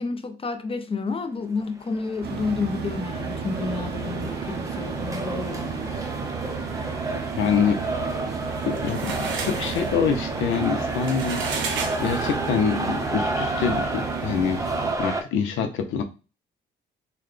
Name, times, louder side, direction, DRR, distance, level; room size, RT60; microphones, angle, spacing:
voice 1, 0.0-5.9, left 4 dB, 30° left, 0.6 m, -30 dB
sound 1, 1.6-15.2, right 2 dB, 15° right, 0.6 m, -31 dB
sound 2, 2.2-14.9, right 6 dB, 55° right, 0.6 m, -33 dB
voice 2, 7.4-7.8 8.7-9.1 9.4-11.4 12.0-14.6 15.0-16.0, left 6 dB, 80° left, 0.7 m, -25 dB
sound 3, 8.4-12.6, right 4 dB, 75° right, 0.9 m, -33 dB
3.9 x 2.2 x 3.2 m
cardioid pair, 90°, 20 cm